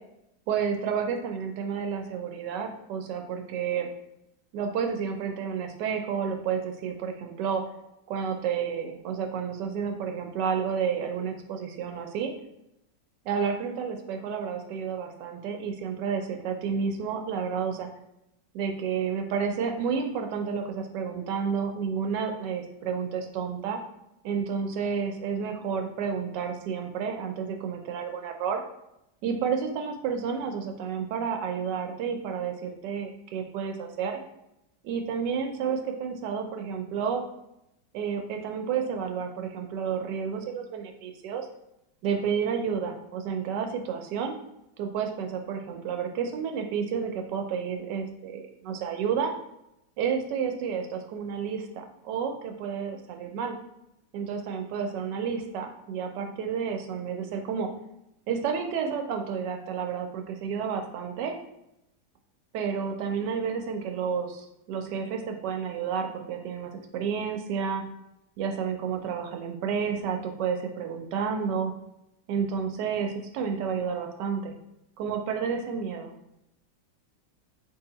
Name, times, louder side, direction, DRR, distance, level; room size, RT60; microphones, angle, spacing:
voice 1, 0.5-3.9 4.5-7.6 8.1-12.3 13.2-17.9 18.5-23.8 24.2-28.6 29.2-34.2 34.8-37.2 37.9-41.5 42.0-44.3 44.8-49.3 50.0-53.6 54.1-57.7 58.3-61.4 62.5-67.8 68.4-71.7 72.3-74.5 75.0-76.1, right 6 dB, 80° right, 4 dB, 1.2 m, -30 dB
3.2 x 2.8 x 3.8 m, 0.83 s
omnidirectional pair, 1.9 m